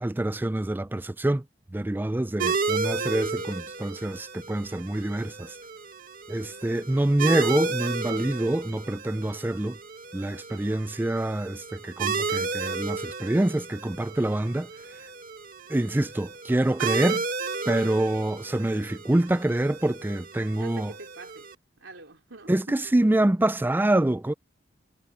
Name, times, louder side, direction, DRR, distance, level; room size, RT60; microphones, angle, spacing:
voice 1, 0.0-1.4 1.7-5.6 6.3-9.8 10.1-14.7 15.7-17.2 17.7-20.9 22.5-24.3, right 1 dB, 10° right, 0.4 m, -26 dB
sound 1, 2.4-21.5, right 5 dB, 50° right, 2.0 m, -33 dB
voice 2, 6.3-7.1 20.6-21.5 21.8-22.9, right 3 dB, 90° right, 3.3 m, -46 dB
head